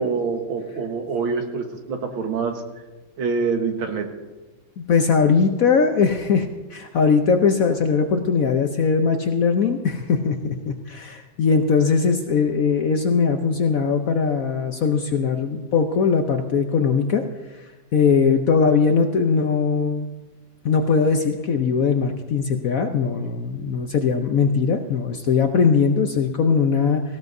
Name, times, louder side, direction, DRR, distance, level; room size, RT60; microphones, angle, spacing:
voice 1, 0.0-2.5 3.2-4.0, right 5 dB, 85° right, 4 dB, 2.2 m, -25 dB
voice 2, 4.8-17.2 17.9-20.1 20.6-27.0, left 5 dB, 60° left, 6 dB, 0.9 m, -20 dB
18.0 x 16.0 x 2.7 m, 1.2 s
omnidirectional pair, 2.2 m